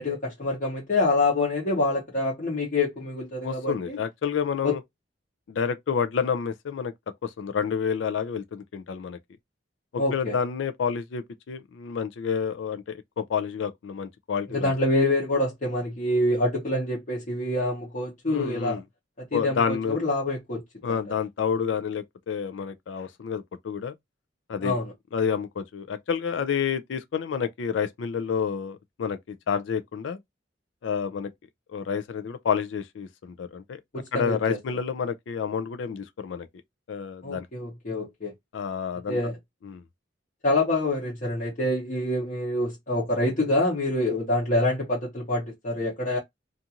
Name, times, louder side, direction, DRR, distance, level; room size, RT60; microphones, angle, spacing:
voice 1, 0.0-4.0 4.6-4.8 10.0-10.4 14.5-18.8 19.2-20.6 20.9-21.0 24.6-24.9 33.9-34.6 37.2-38.3 39.1-39.4 40.4-46.2, left 2 dB, 45° left, 0.9 m, -26 dB
voice 2, 3.4-4.8 5.5-6.9 7.2-9.2 9.9-14.7 18.3-18.8 19.3-20.0 20.8-23.9 24.5-24.8 25.1-30.2 30.8-31.3 31.7-33.8 34.1-36.5 36.9-37.5 38.5-39.2 39.6-39.8, left 6 dB, 80° left, 0.4 m, -29 dB
2.5 x 2.4 x 2.8 m
head